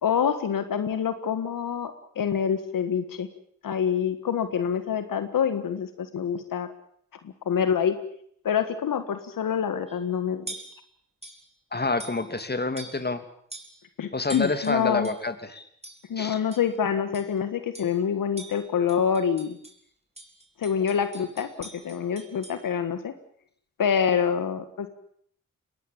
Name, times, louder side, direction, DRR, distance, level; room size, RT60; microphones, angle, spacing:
voice 1, 0.0-3.3 3.6-6.7 7.4-8.0 8.4-10.5 14.0-15.1 16.1-19.6 20.6-23.1 23.8-24.9, left 7 dB, 80° left, 10 dB, 1.7 m, -26 dB
sound 1, 9.9-10.1 10.5-10.8 11.2-11.5 12.0-12.5 12.8-13.2 13.5-13.8 14.3-15.3 15.8-16.1 16.5-16.8 17.1-17.4 17.7-18.0 18.4-19.8 20.2-22.6, right 2 dB, 20° right, 4.7 m, -44 dB
voice 2, 11.7-13.2 14.1-15.7 16.2-16.4, left 3 dB, 30° left, 10 dB, 2.9 m, -28 dB
22.0 x 18.5 x 8.8 m, 0.65 s
cardioid pair, 50°, 33 cm